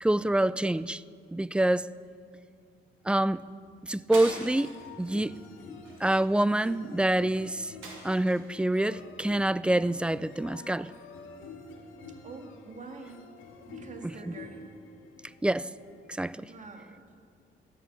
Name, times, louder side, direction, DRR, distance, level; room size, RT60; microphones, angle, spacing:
voice 1, 0.0-1.0 1.3-1.9 3.1-3.4 3.8-4.7 5.0-5.3 6.0-7.7 8.0-10.9 14.0-14.4 15.4-15.6 16.2-16.5, right 1 dB, 5° right, 18 dB, 0.3 m, -26 dB
sound 1, 4.1-4.9 5.3-5.5 5.8-6.8 7.8-8.6, right 3 dB, 85° right, 3.2 m, -43 dB
sound 2, 4.3-16.2, left 3 dB, 85° left, 2.3 m, -48 dB
voice 2, 12.2-13.2 13.7-14.7 16.5-17.1, right 4 dB, 40° right, 5 dB, 1.9 m, -45 dB
13.5 x 10.5 x 8.5 m, 2.3 s
cardioid pair, 90°, 20 cm